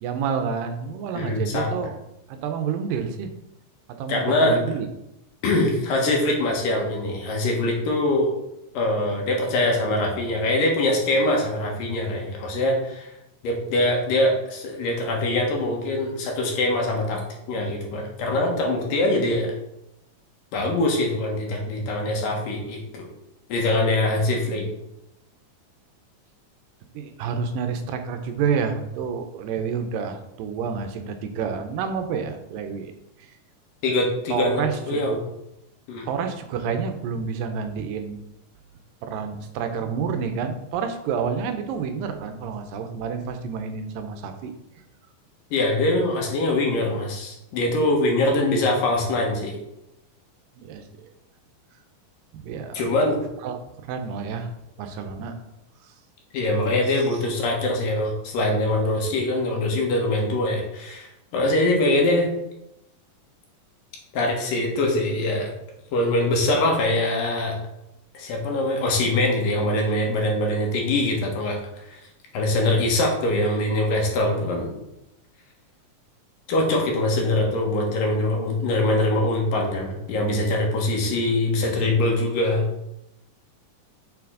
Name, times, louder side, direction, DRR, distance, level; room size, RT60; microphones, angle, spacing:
voice 1, 0.0-2.0 2.3-3.3 4.0-4.9 24.1-24.2 26.9-32.9 33.2-33.3 34.3-34.8 36.1-38.2 39.0-44.5 50.6-50.8 52.3-52.8 53.1-53.2 53.4-54.5 54.8-55.3, right 6 dB, 85° right, 7 dB, 2.3 m, -29 dB
voice 2, 1.1-1.7 4.1-4.6 5.4-8.3 8.7-13.1 13.4-17.2 17.5-19.5 20.5-23.1 23.5-24.7 33.8-35.2 35.9-36.1 45.5-49.5 52.7-53.2 56.3-62.3 64.1-65.5 65.9-67.6 68.1-71.6 71.9-72.0 72.3-74.7 76.5-82.6, left 1 dB, 75° left, 0 dB, 2.9 m, -23 dB
6.6 x 5.9 x 3.8 m, 0.85 s
omnidirectional pair, 4.0 m